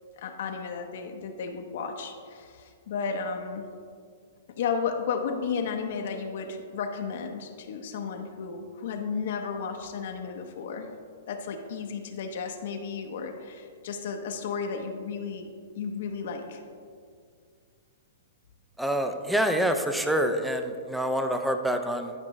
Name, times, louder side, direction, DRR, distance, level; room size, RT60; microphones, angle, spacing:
voice 1, 0.2-3.6 4.5-10.9 11.3-16.6, left 5 dB, 60° left, 4 dB, 0.6 m, -33 dB
voice 2, 18.8-22.1, equal, ahead, 6 dB, 0.4 m, -26 dB
10.5 x 5.2 x 3.1 m, 2.2 s
hypercardioid pair, 150°, 0 cm